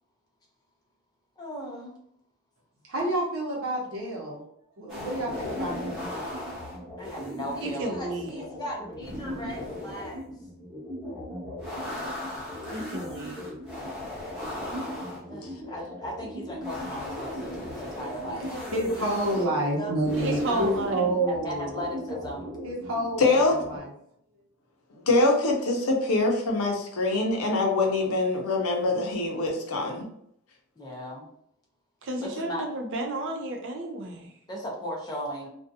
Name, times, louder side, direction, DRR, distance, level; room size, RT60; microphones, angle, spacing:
voice 1, 1.4-2.0 7.0-10.3 15.3-18.7 19.2-20.1 20.4-20.7 21.2-22.6 30.8-31.3 32.2-32.7 34.5-35.5, equal, 20° left, -2 dB, 0.6 m, -37 dB
voice 2, 2.9-4.4 4.8-6.1 18.7-21.8 22.6-23.4 23.7-23.9, right 1 dB, 70° right, -3 dB, 0.9 m, -28 dB
sound 1, 4.9-23.8, left 1 dB, ahead, 1.0 m, -37 dB
voice 3, 7.6-8.5 12.7-13.5 20.2-21.1 32.0-34.3, right 2 dB, 55° right, 3 dB, 0.5 m, -32 dB
voice 4, 23.2-23.5 25.1-30.1, left 2 dB, 90° left, 1 dB, 0.6 m, -24 dB
2.5 x 2.2 x 2.6 m, 0.71 s
head